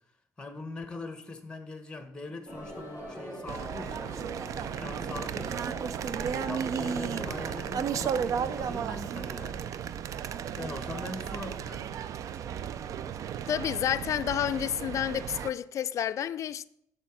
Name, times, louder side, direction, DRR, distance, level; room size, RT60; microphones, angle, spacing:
voice 1, 0.4-4.1 4.5-5.7 6.2-9.6 10.6-11.9, left 3 dB, 15° left, 1.1 m, -42 dB
sound 1, 2.5-8.8, equal, 35° right, 3.4 m, -42 dB
sound 2, 3.5-15.5, right 8 dB, 60° right, 0.4 m, -34 dB
voice 2, 13.4-16.6, left 10 dB, 55° left, 0.3 m, -30 dB
6.9 x 4.8 x 6.0 m
cardioid pair, 105°, 6 cm